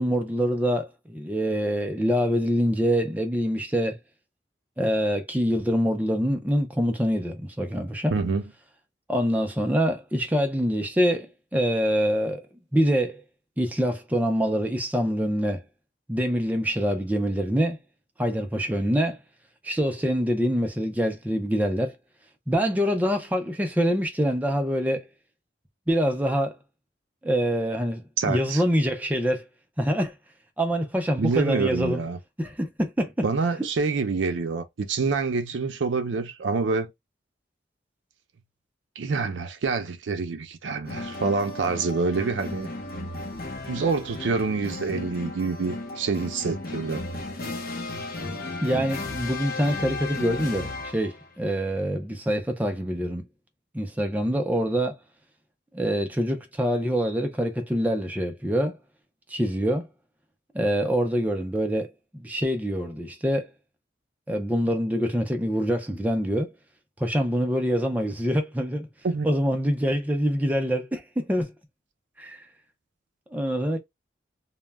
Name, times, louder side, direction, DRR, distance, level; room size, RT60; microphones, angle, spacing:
voice 1, 0.0-4.0 4.8-8.1 9.1-12.4 12.7-13.2 13.6-15.6 16.1-17.8 18.2-19.2 19.6-22.0 22.5-25.1 25.9-26.6 27.2-29.5 29.8-30.1 30.6-32.0 32.4-33.1 48.6-53.2 53.7-55.0 55.7-58.8 59.3-59.9 60.5-63.5 64.3-66.5 67.0-68.9 69.2-71.5 72.2-72.4 73.3-73.8, equal, 10° right, 0.4 m, -25 dB
voice 2, 8.1-8.4 28.2-28.6 31.2-32.2 33.2-36.9 39.0-42.7 43.7-47.0 69.0-69.3, right 4 dB, 85° right, 0.5 m, -26 dB
sound 1, 40.8-51.3, left 2 dB, 50° left, 0.6 m, -35 dB
2.1 x 2.1 x 3.3 m
head